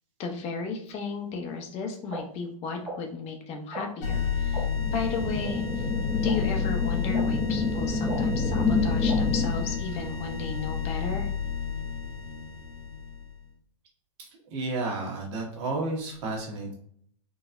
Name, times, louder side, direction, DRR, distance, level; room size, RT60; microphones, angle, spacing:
voice 1, 0.2-4.7 4.9-5.8 6.2-11.3, left 5 dB, 40° left, 4 dB, 0.7 m, -34 dB
sound 1, 2.1-2.2 2.8-2.9 3.7-3.8 4.5-4.6 5.4-5.5 6.2-6.3 7.1-7.2 8.1-8.2 9.1-9.2, right 2 dB, 20° right, 1.0 m, -35 dB
sound 2, 4.0-13.4, left 7 dB, 70° left, 1.2 m, -31 dB
sound 3, 4.8-9.8, left 3 dB, 5° left, 0.4 m, -28 dB
voice 2, 14.5-16.7, right 2 dB, 60° right, -1 dB, 1.1 m, -31 dB
3.8 x 2.0 x 2.5 m, 0.63 s
hypercardioid pair, 115°, 18 cm